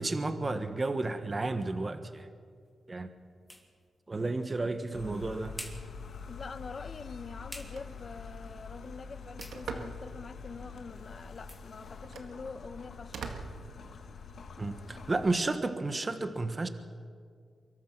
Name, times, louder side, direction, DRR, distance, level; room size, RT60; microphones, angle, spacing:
voice 1, 0.0-2.3 2.9-3.1 4.1-5.5 14.6-16.7, right 2 dB, 30° right, 1.3 m, -32 dB
sound 1, 1.7-13.3, left 1 dB, 5° left, 3.0 m, -54 dB
sound 2, 4.9-15.4, left 5 dB, 70° left, 2.0 m, -46 dB
voice 2, 6.3-13.2, left 4 dB, 45° left, 1.1 m, -45 dB
Telephone, 7.4-14.4, right 4 dB, 85° right, 1.9 m, -46 dB
24.5 x 22.0 x 6.0 m
cardioid pair, 85°, 0 cm